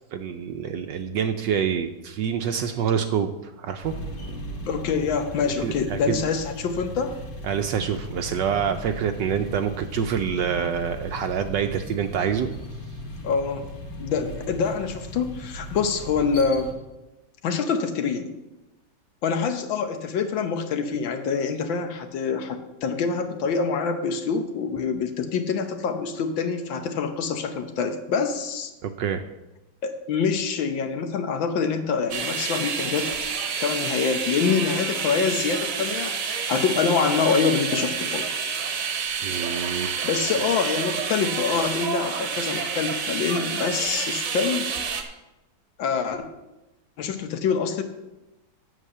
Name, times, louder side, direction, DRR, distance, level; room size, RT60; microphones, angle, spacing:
voice 1, 0.1-4.0 5.6-6.2 7.4-12.5 28.8-29.2 39.2-40.0, right 7 dB, 75° right, 7 dB, 1.2 m, -26 dB
sound 1, 3.8-16.7, equal, 50° left, 2.3 m, -37 dB
voice 2, 4.6-7.1 13.2-13.6 14.0-16.7 17.4-18.3 19.2-28.7 29.8-33.1 33.6-38.3 40.0-44.7 45.8-46.2 47.0-47.8, left 5 dB, 80° left, 7 dB, 1.7 m, -25 dB
sound 2, 32.1-45.0, right 6 dB, 50° right, 1.2 m, -29 dB
8.2 x 7.7 x 6.6 m, 1.0 s
omnidirectional pair, 2.1 m